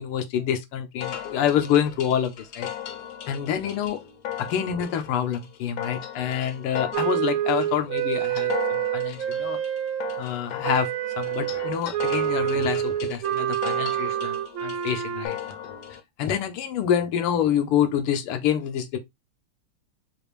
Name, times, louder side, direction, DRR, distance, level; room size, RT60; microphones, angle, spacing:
voice 1, 0.0-2.7 3.3-4.0 4.4-9.6 10.2-10.9 11.2-15.3 16.2-19.0, left 9 dB, 90° left, 1.7 m, -27 dB
sound 1, 1.0-16.0, left 10 dB, 65° left, 1.0 m, -37 dB
Wind instrument woodwind instrument, 6.9-10.2 10.6-15.3, right 11 dB, 75° right, 1.4 m, -27 dB
5.0 x 2.5 x 3.1 m
omnidirectional pair, 2.4 m